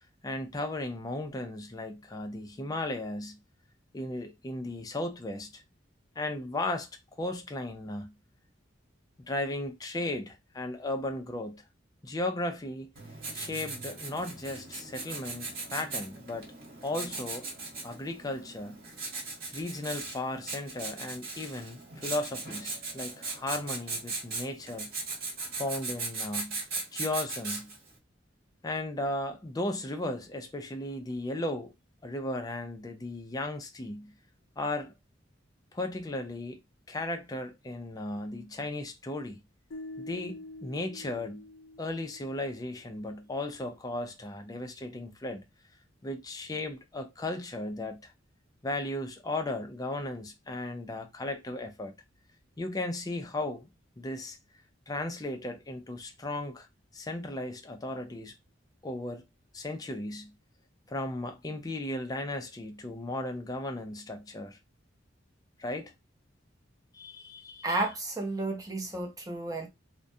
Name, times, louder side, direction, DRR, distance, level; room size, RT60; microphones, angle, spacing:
voice 1, 0.2-3.4 3.9-5.6 6.2-6.9 7.2-8.1 9.2-11.6 12.0-12.9 13.3-16.5 16.8-17.5 17.8-18.8 19.5-24.9 25.5-26.6 26.9-27.7 28.6-31.7 32.0-34.1 34.6-34.9 35.7-36.6 36.9-39.4 40.0-41.4 41.8-45.4 46.0-48.1 48.6-51.9 52.6-53.7 54.0-54.4 54.9-56.7 56.9-58.3 58.8-59.2 59.5-60.3 60.9-64.6 65.6-65.9 66.9-67.7, left 2 dB, 20° left, 0.4 m, -35 dB
Writing, 12.9-27.9, right 3 dB, 55° right, 1.3 m, -38 dB
sound 1, 39.7-42.9, left 2 dB, 85° left, 0.5 m, -46 dB
voice 2, 67.6-69.7, right 2 dB, 20° right, 0.7 m, -32 dB
2.3 x 2.1 x 2.6 m
head